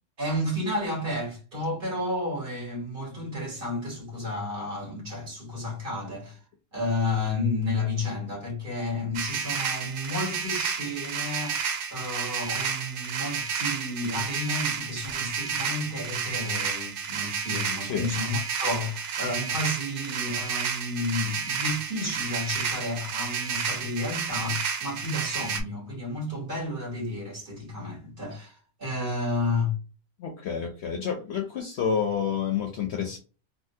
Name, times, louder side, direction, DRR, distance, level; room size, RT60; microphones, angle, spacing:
voice 1, 0.2-6.4 6.7-11.6 11.9-29.8, left 2 dB, 40° right, 1.6 m, -31 dB
sound 1, 9.1-25.6, right 6 dB, 85° right, 1.0 m, -31 dB
voice 2, 17.8-18.1 30.2-33.2, left 7 dB, 65° left, 0.7 m, -29 dB
3.6 x 2.2 x 2.6 m
omnidirectional pair, 1.4 m